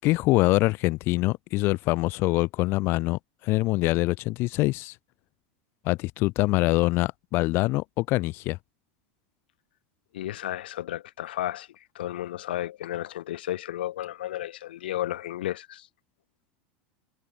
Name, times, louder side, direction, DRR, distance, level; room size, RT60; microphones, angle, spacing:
voice 1, 0.0-4.9 5.8-8.6, left 20 dB, 50° left, 5.2 m, -24 dB
voice 2, 10.1-15.9, left 13 dB, 85° left, 5.1 m, -33 dB
supercardioid pair, 130°, 5 cm